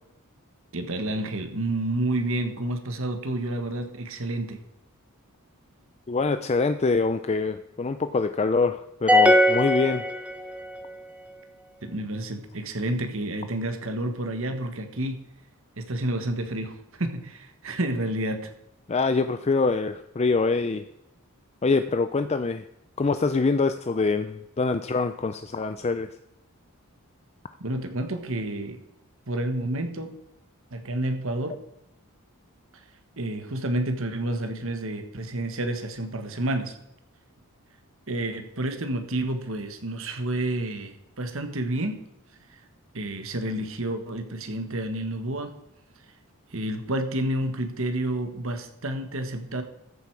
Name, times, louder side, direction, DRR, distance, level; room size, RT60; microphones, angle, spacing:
voice 1, 0.7-4.6 11.8-15.2 15.8-18.5 27.6-28.8 29.3-30.1 30.7-31.6 33.2-36.7 38.1-42.0 42.9-45.6 46.5-49.6, right 1 dB, 65° right, 7 dB, 1.6 m, -29 dB
voice 2, 6.1-10.0 18.9-20.9 21.6-22.6 23.0-26.1, left 4 dB, 30° left, 10 dB, 0.4 m, -24 dB
sound 1, 9.1-10.8, left 1 dB, 5° right, 1.0 m, -20 dB
14.0 x 8.1 x 4.8 m, 0.81 s
head